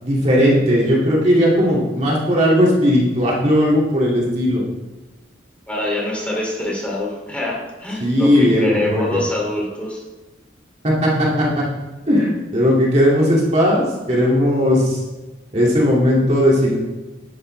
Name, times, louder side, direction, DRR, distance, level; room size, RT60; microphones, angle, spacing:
voice 1, 0.0-4.6 8.0-9.0 10.8-11.7 12.1-15.0 15.5-16.8, equal, 35° right, -4 dB, 2.3 m, -17 dB
voice 2, 5.7-10.0, left 1 dB, 5° left, -4 dB, 2.7 m, -25 dB
11.5 x 11.5 x 3.3 m, 1.2 s
head